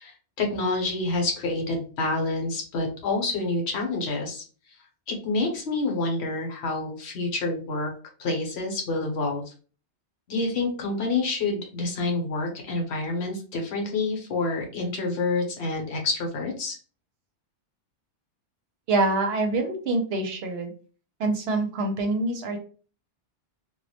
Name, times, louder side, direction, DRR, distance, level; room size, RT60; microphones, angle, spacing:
voice 1, 0.0-4.4 5.1-7.9 8.2-9.5 10.3-16.8, left 3 dB, 70° left, 1 dB, 0.9 m, -28 dB
voice 2, 18.9-20.7 21.2-22.6, right 2 dB, 65° right, 4 dB, 0.8 m, -25 dB
2.2 x 2.0 x 2.7 m, 0.38 s
omnidirectional pair, 1.2 m